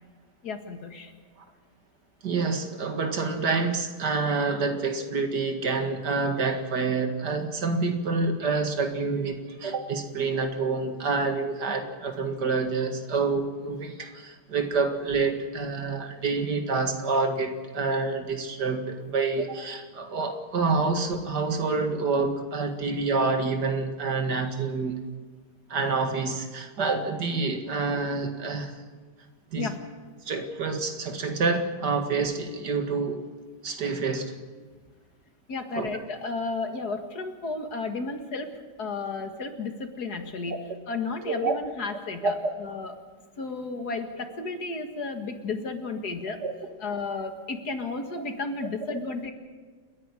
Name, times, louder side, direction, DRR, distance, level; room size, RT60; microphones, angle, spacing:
voice 1, 0.4-1.1 29.6-29.8 35.5-38.5 38.8-40.6 40.9-42.9 43.4-46.4 46.8-49.3, left 3 dB, 65° left, 6 dB, 2.4 m, -33 dB
voice 2, 2.2-25.0 25.7-28.8 29.5-29.7 30.2-33.2 33.6-34.3 35.8-35.9 41.3-41.5 42.2-42.5 46.4-46.5, right 4 dB, 70° right, 6 dB, 2.5 m, -27 dB
29.0 x 11.0 x 9.8 m, 1.4 s
omnidirectional pair, 1.8 m